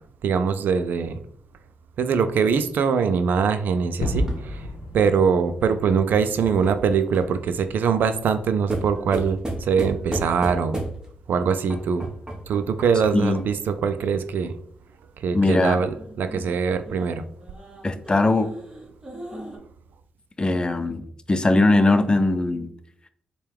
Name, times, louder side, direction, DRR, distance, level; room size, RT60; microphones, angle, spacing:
voice 1, 0.2-1.2 2.0-4.7 4.9-10.8 11.3-12.1 12.5-14.5 15.2-17.3, right 6 dB, 75° right, 11 dB, 0.3 m, -23 dB
Gunshot gunfire / Fireworks / Boom, 4.0-8.8, left 1 dB, 85° left, 0.7 m, -33 dB
sound 1, 4.0-7.4 8.7-11.2 11.7-13.6 15.7-19.6, right 1 dB, 20° right, 1.1 m, -35 dB
voice 2, 15.3-15.8 17.8-18.5 20.4-22.7, left 2 dB, 30° left, 9 dB, 0.5 m, -20 dB
4.4 x 2.2 x 3.4 m, 0.65 s
supercardioid pair, 50°, 3 cm